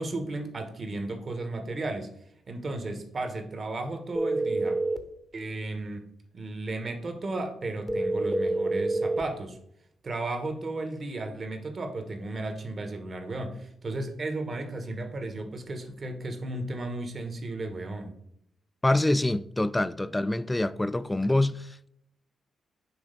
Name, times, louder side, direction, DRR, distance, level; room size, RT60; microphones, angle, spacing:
voice 1, 0.0-2.1 2.5-4.8 5.3-6.1 6.3-9.6 10.0-18.1, right 2 dB, 50° right, 1.2 m, -34 dB
sound 1, 4.1-5.1 7.9-9.3, right 2 dB, ahead, 0.8 m, -27 dB
voice 2, 18.8-21.9, left 1 dB, 15° left, 0.4 m, -26 dB
6.2 x 3.2 x 5.2 m
supercardioid pair, 50°, 0 cm